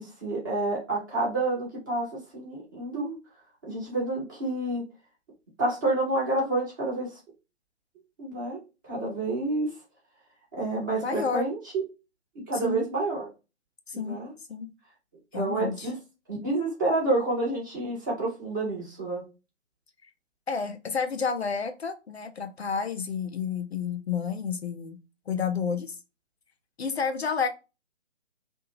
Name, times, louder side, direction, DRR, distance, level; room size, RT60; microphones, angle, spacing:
voice 1, 0.0-3.2 3.6-4.8 5.6-7.1 8.2-8.6 8.8-9.7 10.5-11.8 12.3-13.3 13.9-14.3 15.3-16.0 16.3-19.2, right 2 dB, 15° right, 0.8 m, -29 dB
voice 2, 11.0-11.4 12.5-12.9 13.9-14.2 14.5-14.7 15.3-15.9 20.5-25.0 25.3-26.0 26.8-27.5, left 5 dB, 60° left, 0.5 m, -30 dB
2.8 x 2.2 x 2.7 m
figure-of-eight pair, 140°, 36 cm